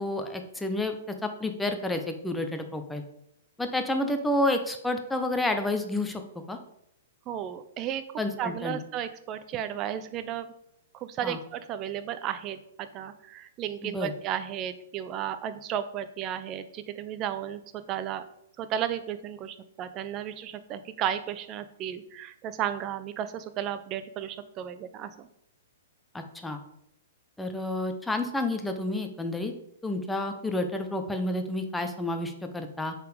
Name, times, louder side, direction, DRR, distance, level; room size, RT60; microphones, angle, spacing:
voice 1, 0.0-3.0 3.6-6.2 6.5-6.6 8.2-8.8 11.2-11.4 13.8-14.1 26.1-26.6 27.4-29.5 29.8-32.9, left 1 dB, 5° left, 6 dB, 0.8 m, -30 dB
voice 2, 7.3-8.0 8.4-10.5 10.9-17.6 17.9-18.2 18.6-25.3 30.3-30.4, right 10 dB, 30° right, 11 dB, 0.6 m, -34 dB
6.6 x 4.2 x 4.9 m, 0.77 s
figure-of-eight pair, 115°, 0 cm